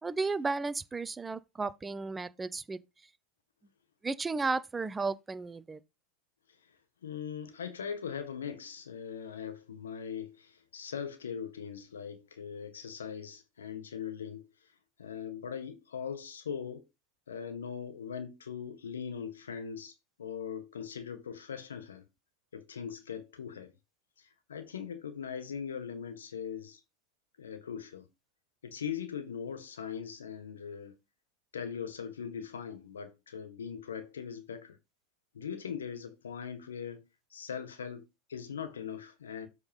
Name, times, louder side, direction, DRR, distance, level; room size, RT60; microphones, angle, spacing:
voice 1, 0.0-2.8 4.0-5.8, right 3 dB, 15° right, 0.7 m, -34 dB
voice 2, 7.0-14.5 15.0-16.8 17.3-19.9 20.2-22.0 22.5-23.7 24.2-26.8 27.4-28.1 28.6-31.0 31.5-34.8 35.3-37.1 37.3-39.5, left 7 dB, 85° left, 1.8 m, -40 dB
7.9 x 3.9 x 5.5 m
hypercardioid pair, 100°, 0 cm